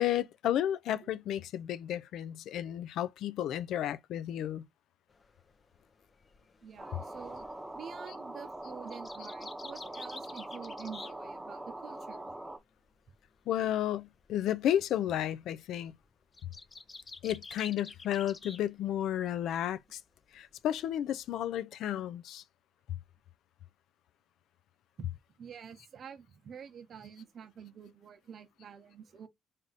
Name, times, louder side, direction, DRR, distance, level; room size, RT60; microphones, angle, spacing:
voice 1, 0.0-4.6 13.5-15.9 17.2-20.0 20.3-22.4, left 11 dB, 80° left, 0.3 m, -32 dB
sound 1, 5.1-11.8 12.1-18.6 18.9-19.6 20.0-21.4, left 3 dB, 35° left, 0.6 m, -51 dB
voice 2, 6.6-7.5 7.7-12.3 25.4-29.3, right 7 dB, 55° right, 0.7 m, -48 dB
sound 2, 6.8-12.6, right 1 dB, 5° right, 0.8 m, -43 dB
3.4 x 2.6 x 3.9 m
cardioid pair, 90°, 0 cm